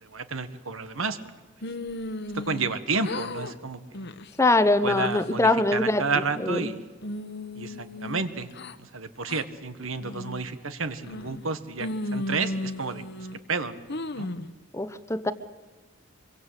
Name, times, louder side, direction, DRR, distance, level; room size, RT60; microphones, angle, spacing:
voice 1, 0.0-1.2 2.3-3.8 4.8-6.8 7.5-8.5 8.8-13.8 14.1-14.3, right 4 dB, 75° right, 12 dB, 1.6 m, -31 dB
sound 1, 1.6-2.8 3.0-3.5 3.9-4.3 4.8-5.4 5.9-6.6 7.0-8.8 9.3-9.4 10.0-10.4 11.0-11.5 11.8-13.4 13.9-14.5, left 1 dB, 55° left, 1.1 m, -35 dB
voice 2, 4.4-6.0 6.4-6.7 14.7-15.3, left 2 dB, 15° left, 13 dB, 0.8 m, -22 dB
25.0 x 23.0 x 8.2 m, 1.3 s
head